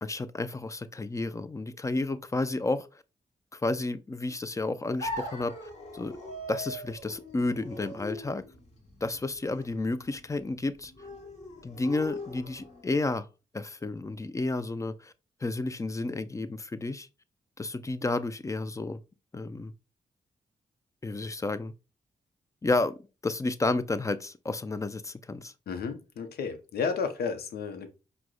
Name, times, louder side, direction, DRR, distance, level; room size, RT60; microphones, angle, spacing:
voice 1, 0.0-2.9 3.5-5.5 5.9-6.2 6.5-8.4 9.0-10.9 11.6-13.3 13.5-15.1 15.4-17.1 17.6-19.0 19.3-19.7 21.0-21.7 22.6-25.5, left 2 dB, 20° left, 0.4 m, -31 dB
sound 1, 5.0-13.0, left 1 dB, 45° left, 1.1 m, -41 dB
voice 2, 25.7-27.9, left 5 dB, 75° left, 0.6 m, -32 dB
4.6 x 2.0 x 2.2 m
supercardioid pair, 45°, 16 cm